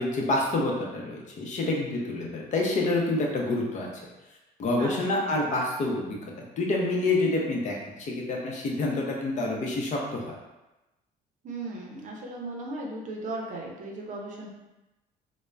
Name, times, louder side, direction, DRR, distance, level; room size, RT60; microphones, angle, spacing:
voice 1, 0.0-3.9 4.6-6.2 6.6-10.3, left 2 dB, 45° left, -1 dB, 0.6 m, -27 dB
voice 2, 4.8-5.3 11.4-14.5, right 2 dB, 50° right, -1 dB, 0.6 m, -37 dB
2.3 x 2.1 x 3.2 m, 1.0 s
cardioid pair, 110°, 17 cm